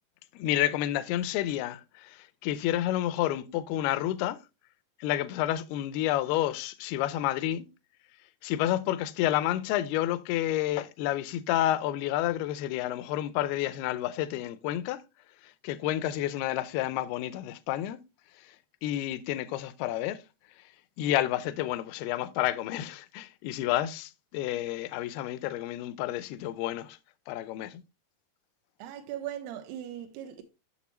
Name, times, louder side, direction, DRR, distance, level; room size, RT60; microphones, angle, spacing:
voice 1, 0.3-4.4 5.0-7.7 8.4-15.0 15.6-18.0 18.8-20.2 21.0-27.0 27.3-27.8, left 13 dB, 80° left, 2.4 m, -30 dB
voice 2, 28.8-30.4, right 11 dB, 85° right, 2.6 m, -39 dB
7.1 x 6.7 x 2.9 m
omnidirectional pair, 4.7 m